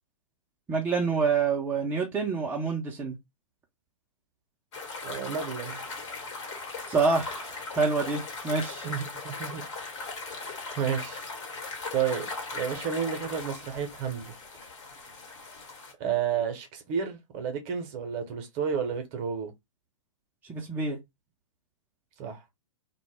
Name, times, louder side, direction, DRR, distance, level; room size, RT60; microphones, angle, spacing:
voice 1, 0.7-3.2 6.9-8.9 20.5-21.0, right 4 dB, 10° right, 0.5 m, -27 dB
sound 1, 4.7-15.9, left 3 dB, 55° left, 1.0 m, -39 dB
voice 2, 5.0-5.8 8.8-9.6 10.3-11.2 11.9-14.3 16.0-19.5 22.2-22.4, right 7 dB, 35° right, 0.8 m, -31 dB
2.1 x 2.0 x 3.2 m
figure-of-eight pair, 110°, 17 cm